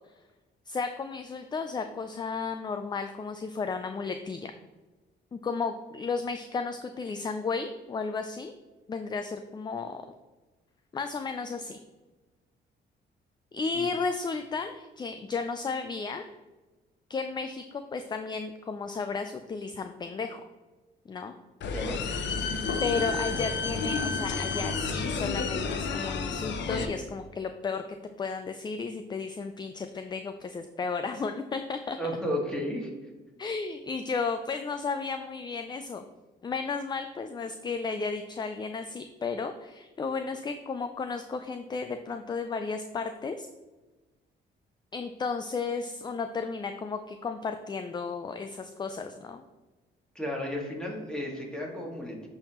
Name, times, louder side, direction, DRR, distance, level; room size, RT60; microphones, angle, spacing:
voice 1, 0.7-4.5 5.3-8.5 8.9-10.0 10.9-11.8 13.5-16.3 17.1-20.4 21.1-21.3 22.8-27.8 28.2-32.0 33.4-36.0 36.4-43.5 44.9-49.4, left 4 dB, 20° left, 8 dB, 0.3 m, -33 dB
sound 1, 21.6-26.9, left 4 dB, 65° left, 0.7 m, -30 dB
voice 2, 32.0-32.9 50.2-52.3, equal, 5° left, -2 dB, 1.9 m, -33 dB
10.5 x 3.5 x 3.0 m, 1.2 s
cardioid pair, 90°, 20 cm